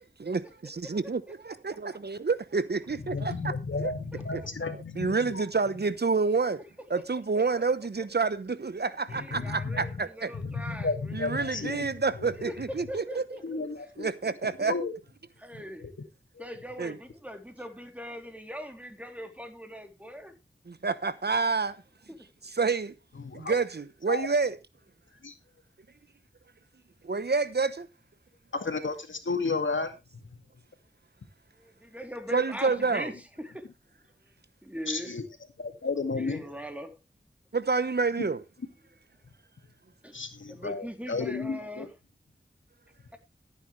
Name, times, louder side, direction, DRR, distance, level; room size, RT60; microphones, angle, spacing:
voice 1, 0.0-3.5 3.8-3.9 4.3-4.4 5.0-6.6 6.9-10.3 11.1-13.2 14.0-14.7 16.8-17.0 20.7-21.8 22.5-22.9 23.3-24.6 27.0-27.9 32.3-33.1 37.5-38.4, right 4 dB, 60° right, 1.0 m, -28 dB
voice 2, 3.0-5.4 9.1-10.0 10.3-11.9 12.2-12.5 13.4-14.1 14.6-14.9 15.5-15.9 16.3-16.5 23.2-23.6 24.1-24.3 25.2-25.3 28.5-30.0 34.9-35.2 35.6-36.4 38.2-38.3 40.1-41.9, left 4 dB, 85° left, 2.2 m, -33 dB
voice 3, 4.1-4.5 8.8-11.7 12.5-13.6 15.4-15.9 16.4-20.3 22.1-22.2 31.6-33.7 34.6-35.1 36.1-36.9 40.0-40.2 40.5-41.9, equal, 5° right, 3.3 m, -41 dB
14.5 x 9.4 x 3.3 m
wide cardioid pair, 50°, 20 cm